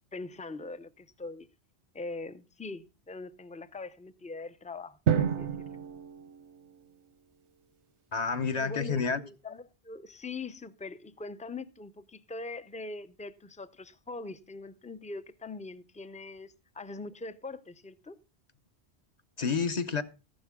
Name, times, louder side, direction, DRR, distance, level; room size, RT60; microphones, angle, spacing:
voice 1, 0.1-1.5 1.9-5.5 8.5-18.2, left 3 dB, 10° left, 0.4 m, -42 dB
Drum, 5.1-7.2, right 8 dB, 90° right, 1.1 m, -30 dB
voice 2, 8.1-9.2 19.4-20.0, left 5 dB, 40° left, 0.9 m, -29 dB
14.5 x 11.5 x 3.6 m
omnidirectional pair, 1.1 m